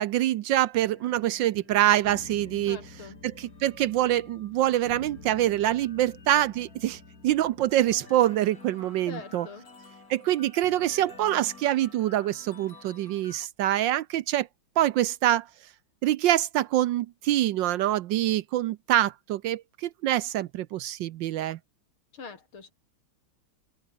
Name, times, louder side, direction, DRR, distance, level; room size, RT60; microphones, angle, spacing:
voice 1, 0.0-2.8 3.2-9.5 10.1-14.5 14.8-15.5 16.0-21.6, right 13 dB, 70° right, 1.2 m, -25 dB
sound 1, 0.8-13.5, left 3 dB, 45° left, 3.8 m, -49 dB
voice 2, 2.7-3.2 9.1-9.7 22.1-22.7, left 5 dB, 80° left, 4.2 m, -43 dB
omnidirectional pair, 2.3 m